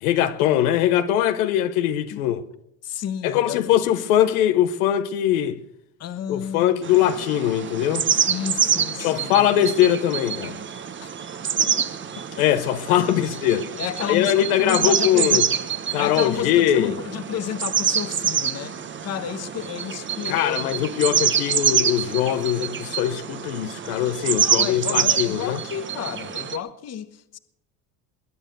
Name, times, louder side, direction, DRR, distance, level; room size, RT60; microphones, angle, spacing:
voice 1, 0.0-2.4 3.2-5.6 6.3-8.1 9.0-10.6 12.4-13.7 14.0-15.4 15.9-17.0 20.3-25.6, left 11 dB, 80° left, 1.2 m, -21 dB
voice 2, 2.8-3.6 6.0-6.9 8.1-9.5 11.0-11.1 11.6-11.9 13.8-15.4 15.9-20.7 24.3-27.4, left 9 dB, 35° left, 1.1 m, -31 dB
sound 1, 6.8-26.6, right 7 dB, 25° right, 1.1 m, -26 dB
20.5 x 9.1 x 6.8 m
supercardioid pair, 100°, 43 cm